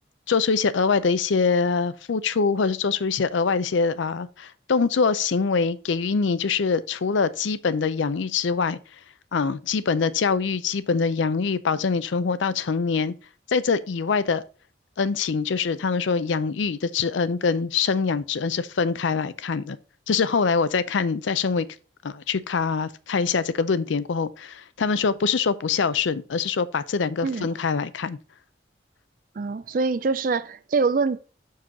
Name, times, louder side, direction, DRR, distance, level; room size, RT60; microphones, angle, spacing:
voice 1, 0.3-8.8 9.3-13.1 13.5-14.4 15.0-19.8 20.1-21.7 22.0-28.2, left 5 dB, 80° left, 0.5 m, -24 dB
voice 2, 29.4-31.2, right 4 dB, 45° right, 0.4 m, -24 dB
6.2 x 4.6 x 4.1 m
head